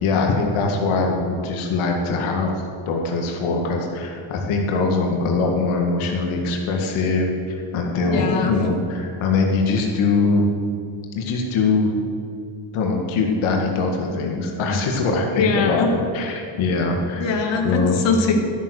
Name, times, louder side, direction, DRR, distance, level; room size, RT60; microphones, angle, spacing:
voice 1, 0.0-10.5 11.1-11.9 12.7-17.2 17.6-18.0, left 3 dB, 90° left, 1 dB, 1.9 m, -22 dB
voice 2, 8.0-8.5 15.3-15.9 17.2-18.3, left 4 dB, 65° left, 2 dB, 2.0 m, -22 dB
13.0 x 9.0 x 6.4 m, 2.5 s
cardioid pair, 150°, 47 cm